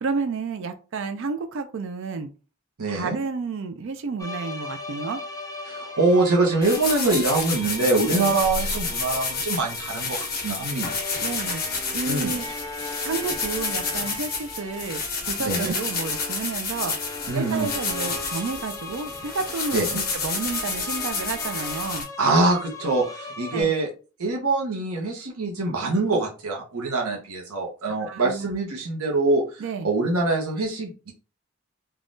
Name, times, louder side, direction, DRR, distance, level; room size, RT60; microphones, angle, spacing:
voice 1, 0.0-2.3 2.9-5.2 8.1-8.4 11.2-11.6 11.9-12.4 13.0-16.9 17.3-19.8 20.2-22.1 23.5-23.7 28.0-28.5 29.6-29.9, right 4 dB, 60° right, 0.4 m, -31 dB
voice 2, 2.8-3.2 5.7-11.0 12.1-12.3 15.4-15.7 17.3-17.7 19.7-20.0 22.2-23.9 24.2-31.1, right 3 dB, 90° right, 0.8 m, -24 dB
sound 1, 4.2-23.6, left 3 dB, 15° left, 0.4 m, -38 dB
sound 2, 6.6-22.0, left 4 dB, 45° left, 1.1 m, -30 dB
3.4 x 2.3 x 2.6 m
head